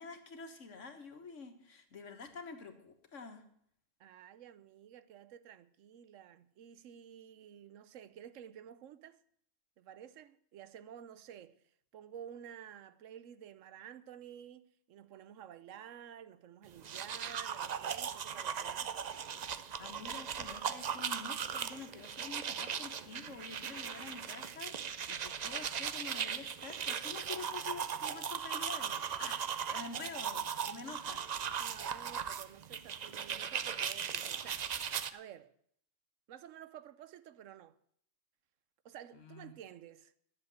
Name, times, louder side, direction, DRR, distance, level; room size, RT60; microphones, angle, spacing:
voice 1, 0.0-3.4 19.8-29.4 29.7-31.2 39.1-39.5, left 4 dB, 80° left, 1.8 m, -48 dB
voice 2, 4.0-9.2 9.8-11.6 11.9-18.9 30.8-30.9 31.6-34.7 35.1-35.5 36.3-37.8 38.8-40.1, right 9 dB, 90° right, 1.1 m, -52 dB
sound 1, 16.7-35.1, right 7 dB, 50° right, 0.5 m, -38 dB
11.0 x 7.4 x 9.1 m
omnidirectional pair, 1.3 m